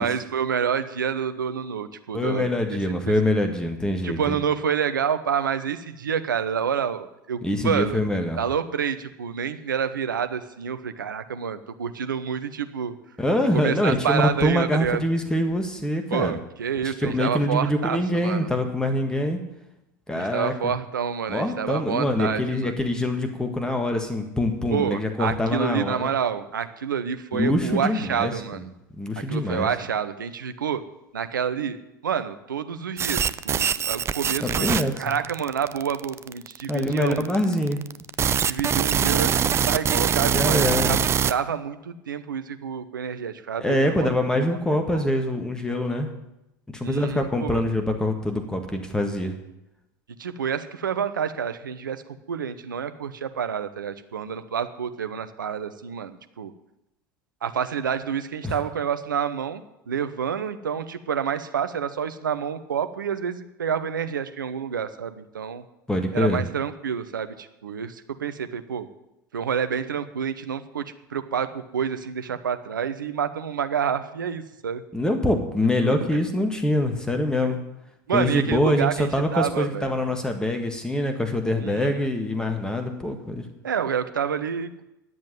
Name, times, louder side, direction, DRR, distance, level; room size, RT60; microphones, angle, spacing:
voice 1, 0.0-2.5 2.9-3.1 4.0-8.0 8.4-12.9 13.5-15.0 16.1-18.5 20.1-22.8 24.7-28.7 29.3-30.8 31.1-31.8 32.0-37.3 38.4-44.1 44.4-44.5 44.9-45.1 46.8-47.6 50.2-52.0 52.3-56.5 57.4-65.6 66.1-68.9 69.3-74.8 75.8-75.9 77.4-77.5 78.1-79.9 81.6-82.1 83.6-84.8, right 7 dB, 75° right, 10 dB, 0.8 m, -28 dB
voice 2, 2.1-4.3 7.4-8.4 13.2-16.4 16.8-19.4 20.1-20.7 21.3-26.1 27.3-28.6 29.0-29.7 34.4-35.1 36.7-37.8 40.2-41.0 43.6-46.1 46.7-49.4 58.4-58.6 65.9-66.4 74.9-77.6 78.1-83.4, left 1 dB, 5° left, 5 dB, 1.7 m, -24 dB
sound 1, 33.0-41.3, right 8 dB, 25° right, 0.5 m, -23 dB
11.0 x 7.5 x 8.9 m, 0.90 s
figure-of-eight pair, 75°, 11 cm